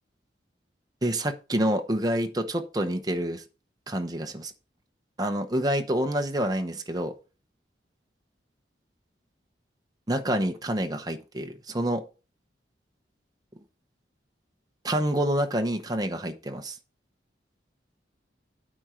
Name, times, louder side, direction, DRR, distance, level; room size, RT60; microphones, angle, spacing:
voice 1, 1.0-3.4 3.9-4.5 5.2-7.1 10.1-12.0 14.8-16.7, right 1 dB, 20° right, 0.9 m, -27 dB
8.6 x 4.4 x 6.3 m
head